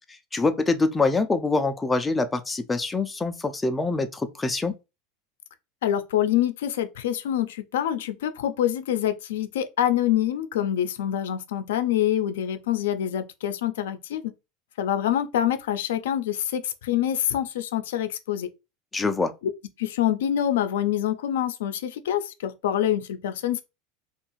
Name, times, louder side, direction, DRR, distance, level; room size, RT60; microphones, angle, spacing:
voice 1, 0.3-4.7 18.9-19.3, left 3 dB, 10° left, 0.3 m, -25 dB
voice 2, 5.8-14.3 14.8-18.5 19.8-23.6, left 11 dB, 90° left, 0.4 m, -26 dB
2.6 x 2.4 x 3.0 m
supercardioid pair, 135°, 0 cm